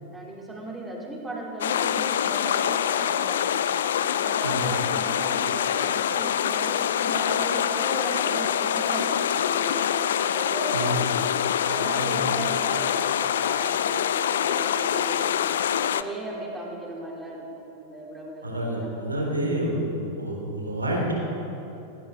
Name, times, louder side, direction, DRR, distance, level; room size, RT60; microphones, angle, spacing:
voice 1, 0.1-3.6 4.1-10.8 11.1-11.3 11.6-17.4 17.8-18.9, right 1 dB, 10° right, -2 dB, 3.4 m, -36 dB
sound 1, 1.6-16.0, left 9 dB, 60° left, 0.4 m, -25 dB
voice 2, 18.4-19.7 20.1-21.1, right 1 dB, 80° right, -1 dB, 3.7 m, -28 dB
18.0 x 18.0 x 3.9 m, 2.9 s
figure-of-eight pair, 90°, 0 cm